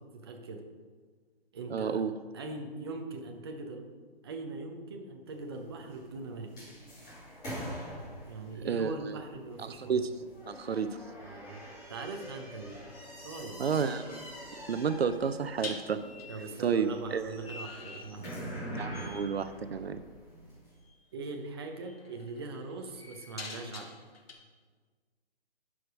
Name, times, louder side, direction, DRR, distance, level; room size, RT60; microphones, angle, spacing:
voice 1, 0.1-0.6 1.5-2.0 2.3-3.9 4.2-6.5 8.3-10.0 11.2-12.8 13.2-13.6 16.3-18.6 21.1-23.9, right 3 dB, 25° right, 3 dB, 0.6 m, -41 dB
voice 2, 1.7-2.1 8.6-8.9 9.6-10.1 10.5-11.0 13.6-14.2 14.7-16.0 16.6-17.4 18.7-20.0, right 6 dB, 80° right, 11 dB, 0.6 m, -31 dB
sound 1, 5.3-20.7, equal, 10° left, 2.5 m, -45 dB
sound 2, 13.0-13.2 15.6-18.7 18.9-19.4 20.8-21.0 21.5-24.3, left 3 dB, 75° left, 1.6 m, -46 dB
9.2 x 5.0 x 5.1 m, 1.5 s
hypercardioid pair, 155°, 30 cm